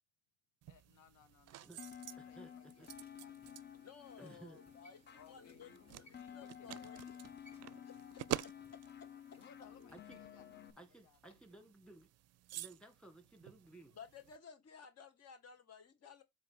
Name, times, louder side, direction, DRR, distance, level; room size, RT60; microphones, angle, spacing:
sound 1, 0.6-14.4, right 14 dB, 55° right, 0.4 m, -50 dB
voice 1, 0.7-1.7 2.2-3.7 5.1-7.3 8.1-8.2 9.3-11.4, left 9 dB, 80° left, 0.8 m, -65 dB
sound 2, 1.8-10.7, left 9 dB, 35° left, 0.7 m, -53 dB
sound 3, 2.1-11.5 11.8-11.9, left 1 dB, 20° left, 4.1 m, -71 dB
voice 2, 2.2-2.9 4.2-4.6 9.9-10.2 10.8-12.1 12.5-13.9, right 2 dB, 5° left, 1.8 m, -57 dB
voice 3, 3.7-7.0 7.8-8.5 13.9-16.2, left 7 dB, 55° left, 1.1 m, -56 dB
7.7 x 2.6 x 5.5 m
cardioid pair, 90°, 30 cm